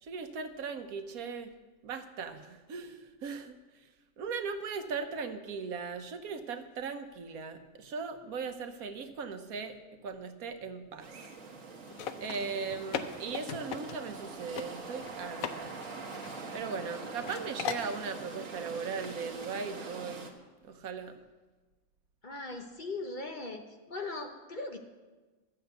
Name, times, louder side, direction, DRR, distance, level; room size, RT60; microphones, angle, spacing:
voice 1, 0.0-1.5 1.8-3.9 4.2-11.1 12.2-15.8 16.5-20.3 20.6-21.2, right 5 dB, 80° right, 8 dB, 1.4 m, -38 dB
sound 1, 11.0-20.3, right 4 dB, 65° right, 1.7 m, -44 dB
sound 2, 11.9-14.3 14.6-14.7 15.0-15.6 15.8-16.9 17.2-17.9, left 8 dB, 75° left, 1.1 m, -38 dB
voice 2, 22.2-23.6 23.9-24.8, left 3 dB, 40° left, 4 dB, 1.0 m, -39 dB
13.0 x 6.7 x 8.0 m, 1.3 s
omnidirectional pair, 1.5 m